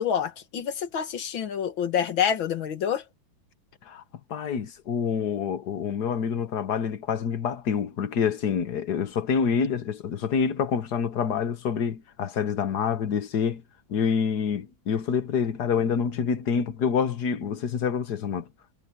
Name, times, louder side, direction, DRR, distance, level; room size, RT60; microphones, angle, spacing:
voice 1, 0.0-3.0, left 8 dB, 90° left, 2.3 m, -27 dB
voice 2, 4.3-13.6 13.9-18.4, left 6 dB, 60° left, 1.7 m, -27 dB
omnidirectional pair, 2.1 m